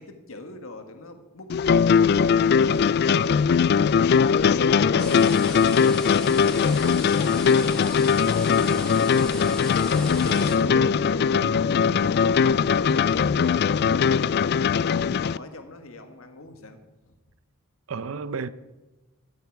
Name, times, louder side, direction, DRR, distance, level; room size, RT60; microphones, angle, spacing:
voice 1, 0.0-1.5 1.9-4.1 4.5-16.8 17.1-17.2, left 2 dB, 70° left, 1.6 m, -41 dB
sound 1, 1.5-15.4, left 6 dB, 50° left, 0.3 m, -20 dB
voice 2, 4.9-5.4 10.3-10.9 11.3-11.7 17.9-18.5, right 4 dB, 65° right, 0.6 m, -35 dB
sound 2, 5.0-10.6, equal, 5° left, 2.1 m, -38 dB
15.0 x 12.5 x 4.7 m
head